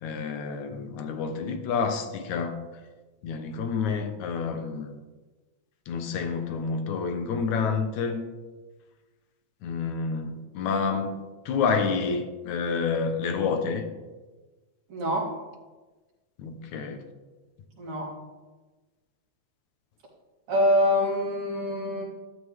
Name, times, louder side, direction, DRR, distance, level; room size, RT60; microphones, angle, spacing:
voice 1, 0.0-2.6 3.2-4.9 5.9-8.2 9.6-11.2 11.5-13.9 16.4-17.0, left 5 dB, 80° left, 2.5 m, -28 dB
voice 2, 14.9-15.3 17.8-18.1 20.5-22.0, left 1 dB, 75° right, 4.8 m, -25 dB
14.0 x 13.0 x 3.6 m
omnidirectional pair, 3.3 m